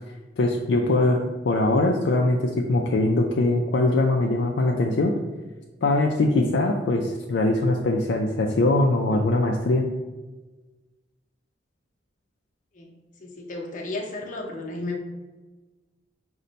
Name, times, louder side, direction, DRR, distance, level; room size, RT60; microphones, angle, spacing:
voice 1, 0.4-5.1 5.8-9.9, left 2 dB, 70° left, 1 dB, 0.4 m, -22 dB
voice 2, 12.7-15.0, left 2 dB, 45° left, 0 dB, 0.7 m, -34 dB
5.3 x 2.2 x 3.9 m, 1.2 s
head